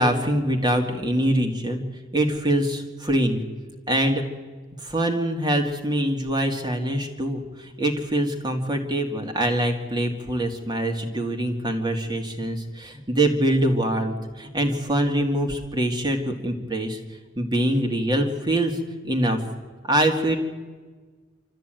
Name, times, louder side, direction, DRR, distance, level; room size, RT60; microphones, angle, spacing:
voice 1, 0.0-1.8 2.1-3.4 3.9-4.2 4.8-17.0 17.4-18.7 19.0-19.4 19.8-20.4, right 1 dB, 20° right, 4 dB, 2.2 m, -24 dB
26.5 x 13.5 x 9.1 m, 1.4 s
head